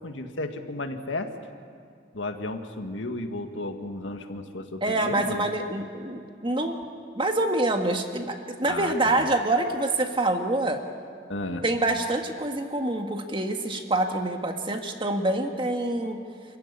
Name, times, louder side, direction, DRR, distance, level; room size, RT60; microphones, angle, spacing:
voice 1, 0.0-1.3 2.1-5.5 8.7-9.3 11.3-11.6, left 2 dB, 80° left, 6 dB, 1.9 m, -33 dB
voice 2, 4.8-6.8 7.2-10.8 11.6-16.2, right 2 dB, 25° right, 4 dB, 1.7 m, -26 dB
28.0 x 15.5 x 9.9 m, 2.3 s
head